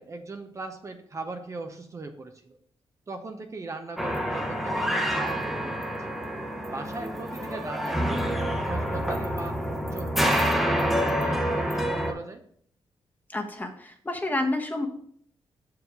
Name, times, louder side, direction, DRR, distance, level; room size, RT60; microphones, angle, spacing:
voice 1, 0.0-2.6 3.1-6.1 6.7-9.6 9.9-12.4, right 3 dB, 35° right, 6 dB, 0.7 m, -39 dB
sound 1, 4.0-12.1, equal, ahead, 0.9 m, -27 dB
voice 2, 13.3-14.9, left 2 dB, 20° left, 3 dB, 1.1 m, -29 dB
6.4 x 4.8 x 5.0 m, 0.62 s
cardioid pair, 95°, 9 cm